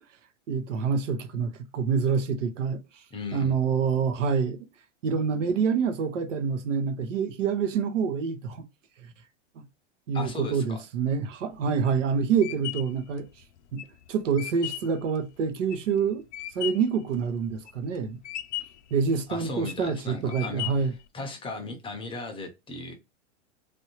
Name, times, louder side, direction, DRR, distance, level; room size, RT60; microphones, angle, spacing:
voice 1, 0.5-2.8 3.3-4.7 5.0-8.6 9.6-9.7 10.1-13.3 13.7-16.2 16.5-18.2 18.9-20.9, right 6 dB, 85° right, 0.9 m, -27 dB
voice 2, 3.1-3.6 10.1-10.8 19.3-20.6 21.1-22.9, left 2 dB, 15° left, 0.5 m, -36 dB
sound 1, 11.5-17.0 17.4-18.0 18.2-18.9 19.4-19.9 20.3-21.0, left 14 dB, 70° left, 0.6 m, -37 dB
3.2 x 2.6 x 2.8 m
hypercardioid pair, 130°, 36 cm